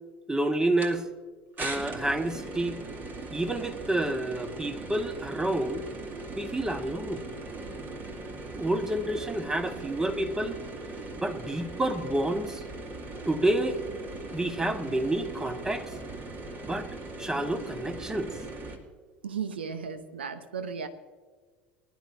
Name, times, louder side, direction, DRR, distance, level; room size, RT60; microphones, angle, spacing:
voice 1, 0.3-1.0 1.6-2.8 3.3-5.8 6.3-7.2 8.6-10.6 11.2-12.6 13.2-13.8 14.3-15.9 16.6-16.9 17.2-18.3, right 1 dB, 10° right, 8 dB, 1.3 m, -29 dB
sound 1, 0.8-0.9 1.6-18.8, right 2 dB, 35° right, 2.2 m, -40 dB
voice 2, 19.2-20.9, right 6 dB, 80° right, 10 dB, 0.9 m, -35 dB
21.5 x 11.5 x 2.7 m, 1.4 s
hypercardioid pair, 75°, 6 cm